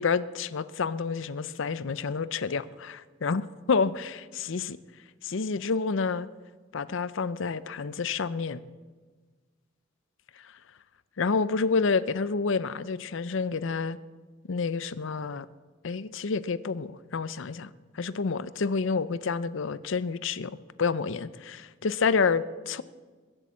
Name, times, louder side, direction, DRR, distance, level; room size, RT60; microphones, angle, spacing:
voice 1, 0.0-4.2 4.4-4.8 5.2-6.3 6.7-8.6 11.2-14.0 14.5-15.5 15.8-17.7 17.9-22.8, left 5 dB, 65° left, 16 dB, 0.6 m, -29 dB
22.0 x 8.1 x 7.5 m, 1.4 s
head